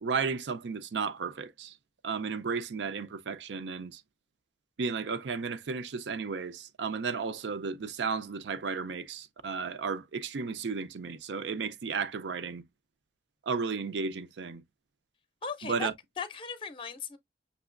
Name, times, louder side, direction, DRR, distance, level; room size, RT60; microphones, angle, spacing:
voice 1, 0.0-1.8 2.0-4.0 4.8-12.6 13.5-14.6 15.6-15.9, right 5 dB, 80° right, 0.5 m, -33 dB
voice 2, 15.4-15.9 16.2-17.2, left 5 dB, 30° left, 0.5 m, -37 dB
6.0 x 2.9 x 2.4 m
head